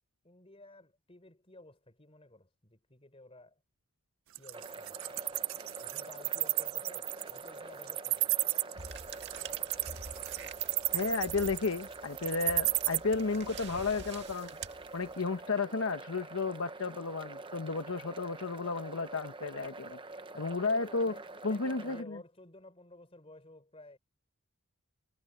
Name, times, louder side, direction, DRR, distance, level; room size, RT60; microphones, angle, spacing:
voice 1, 0.2-3.6 4.4-5.0 5.8-8.3 20.3-24.0, left 1 dB, 25° left, 3.9 m, -54 dB
Wild animals, 4.3-13.0, right 20 dB, 70° right, 0.5 m, -32 dB
sound 1, 4.5-22.0, right 3 dB, 25° right, 0.8 m, -46 dB
sound 2, 8.8-15.4, right 4 dB, 50° right, 2.1 m, -48 dB
voice 2, 10.9-14.6 14.9-20.0 20.3-21.1 21.4-22.2, left 4 dB, 70° left, 0.9 m, -33 dB
head